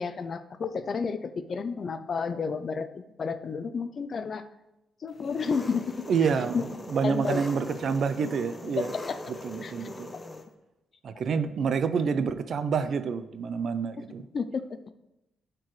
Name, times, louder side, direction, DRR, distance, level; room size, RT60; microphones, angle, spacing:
voice 1, 0.0-4.5 5.0-6.0 6.5-6.6 7.0-7.4 8.8-9.2 9.6-9.9 14.3-14.8, left 5 dB, 50° left, 11 dB, 0.5 m, -31 dB
Engine, 5.2-10.4, left 2 dB, 25° left, 0.8 m, -41 dB
voice 2, 6.1-6.6 6.9-8.9 9.4-10.1 11.0-14.2, right 6 dB, 65° right, 12 dB, 0.5 m, -28 dB
11.5 x 4.5 x 3.2 m, 0.92 s
cardioid pair, 80°, 0 cm